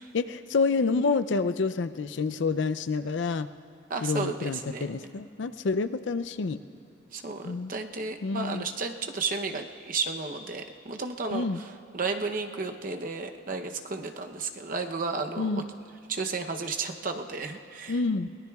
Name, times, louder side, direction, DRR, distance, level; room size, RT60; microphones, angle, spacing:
voice 1, 0.1-3.5 4.0-6.6 7.4-7.7 8.2-8.6 11.3-11.6 15.4-15.7 17.9-18.3, left 4 dB, 70° left, 12 dB, 0.5 m, -28 dB
voice 2, 3.9-5.1 7.1-15.6 16.1-18.0, right 4 dB, 45° right, 5 dB, 0.8 m, -33 dB
23.5 x 18.5 x 2.4 m, 2.7 s
head